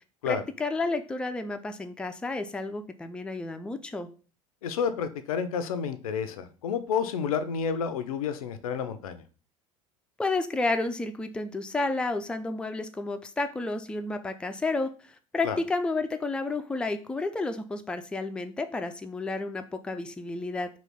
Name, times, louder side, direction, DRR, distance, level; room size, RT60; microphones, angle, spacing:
voice 1, 0.3-4.1 10.2-14.9 15.3-20.7, left 3 dB, 5° left, 7 dB, 0.3 m, -31 dB
voice 2, 4.6-9.2 15.4-15.6, left 7 dB, 80° left, 10 dB, 0.4 m, -30 dB
3.0 x 2.3 x 3.5 m, 0.37 s
hypercardioid pair, 75°, 18 cm